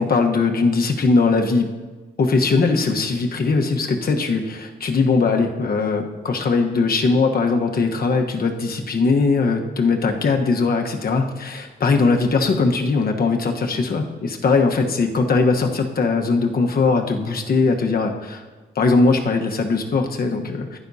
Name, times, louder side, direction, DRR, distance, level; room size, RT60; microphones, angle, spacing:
voice 1, 0.0-1.7 2.2-18.4 18.7-20.8, left 4 dB, 55° left, 3 dB, 1.2 m, -20 dB
15.0 x 11.0 x 2.8 m, 1.3 s
wide cardioid pair, 120°, 18 cm